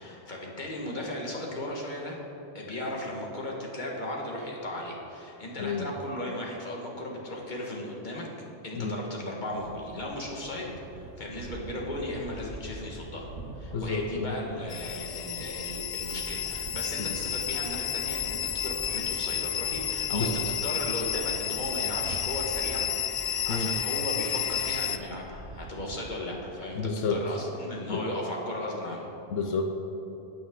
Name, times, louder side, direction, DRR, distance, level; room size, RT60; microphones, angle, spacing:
voice 1, 0.0-2.2 2.5-8.3 8.6-13.3 13.5-20.3 20.6-22.9 23.1-29.1, left 1 dB, 40° left, -2 dB, 1.8 m, -36 dB
voice 2, 5.6-5.9 8.7-8.9 13.7-14.4 17.0-17.1 20.1-20.4 23.5-23.7 26.7-27.2 27.9-28.0 29.3-29.7, left 4 dB, 85° left, 4 dB, 1.1 m, -30 dB
sound 1, 9.5-27.0, right 4 dB, 80° right, 1.2 m, -48 dB
sound 2, 11.1-25.7 26.0-26.1, equal, 45° right, 2.6 m, -46 dB
sound 3, 14.7-25.0, left 9 dB, 60° left, 0.5 m, -31 dB
15.0 x 8.8 x 3.8 m, 3.0 s
omnidirectional pair, 1.2 m